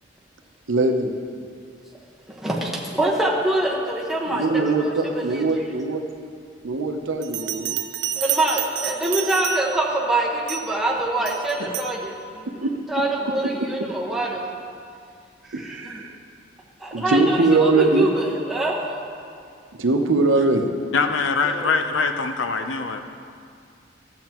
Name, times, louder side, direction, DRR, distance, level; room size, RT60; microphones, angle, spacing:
voice 1, 0.7-1.1 4.3-6.0 6.6-7.8 11.6-11.7 12.5-12.7 15.5-16.1 16.9-18.1 19.8-20.7, right 3 dB, 90° right, 4 dB, 0.7 m, -21 dB
voice 2, 2.3-4.4 4.8-4.9 8.1-12.5 12.9-14.6 15.4-15.5 15.8-16.0 16.8-18.8 21.4-21.7, right 1 dB, ahead, -5 dB, 1.2 m, -24 dB
Bell, 7.2-9.9 10.5-10.8 11.3-12.0, right 12 dB, 65° right, 0.4 m, -29 dB
voice 3, 20.9-23.0, left 4 dB, 80° left, 7 dB, 0.6 m, -23 dB
13.5 x 8.0 x 3.0 m, 2.3 s
head